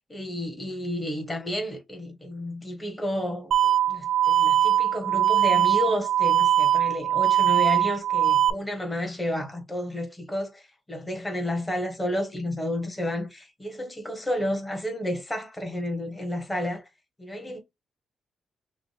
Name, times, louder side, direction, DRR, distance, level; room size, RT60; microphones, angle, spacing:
voice 1, 0.1-3.5 3.9-16.9 17.2-17.6, left 1 dB, 10° left, 1.2 m, -31 dB
sound 1, 3.5-8.5, right 11 dB, 55° right, 0.5 m, -21 dB
5.9 x 2.2 x 3.2 m
cardioid pair, 170°, 0 cm